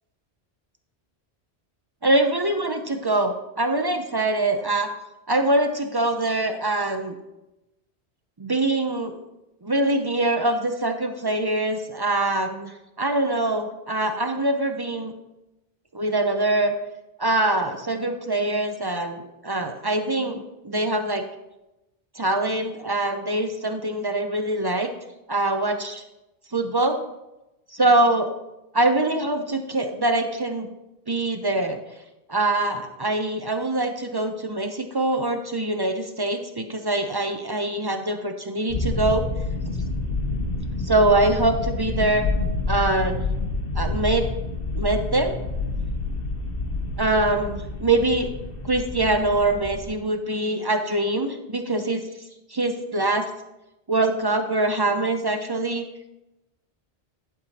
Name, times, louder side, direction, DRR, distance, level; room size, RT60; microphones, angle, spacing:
voice 1, 2.0-4.9 5.3-7.2 8.4-9.2 9.6-15.1 15.9-16.7 17.2-21.2 22.2-24.9 25.3-26.0 26.5-27.0 27.7-28.3 28.7-30.7 31.1-31.8 32.3-39.2 40.8-42.3 42.7-43.2 43.8-44.3 44.7-45.4 47.0-48.3 48.6-52.0 52.5-53.3 53.9-55.8, right 2 dB, 35° right, 6 dB, 0.4 m, -23 dB
sound 1, 38.7-49.9, left 3 dB, 60° left, 1.0 m, -28 dB
10.5 x 4.8 x 4.1 m, 0.95 s
omnidirectional pair, 1.1 m